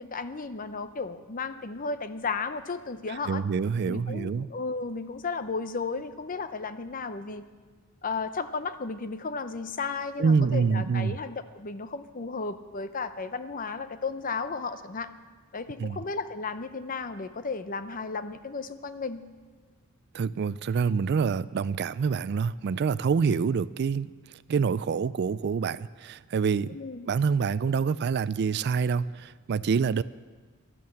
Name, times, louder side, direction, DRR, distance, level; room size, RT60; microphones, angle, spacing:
voice 1, 0.0-3.4 3.9-7.4 8.0-15.1 15.5-19.2 26.7-27.1, left 4 dB, 40° left, 11 dB, 0.7 m, -34 dB
voice 2, 3.3-4.5 10.2-11.2 15.8-16.0 20.1-24.1 24.5-26.7 27.1-30.0, right 5 dB, 50° right, 17 dB, 0.3 m, -26 dB
12.5 x 11.0 x 7.7 m, 1.4 s
head